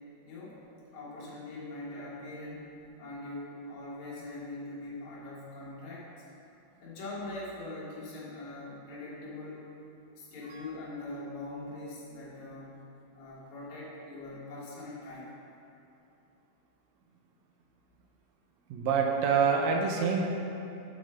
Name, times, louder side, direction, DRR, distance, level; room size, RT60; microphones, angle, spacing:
voice 1, 0.2-0.6 0.9-2.7 3.0-6.1 6.8-9.7 10.2-12.8 13.1-15.3, left 2 dB, 75° left, -6 dB, 2.5 m, -42 dB
voice 2, 18.7-20.3, right 6 dB, 80° right, 1 dB, 1.8 m, -26 dB
6.0 x 4.4 x 4.6 m, 2.7 s
omnidirectional pair, 3.3 m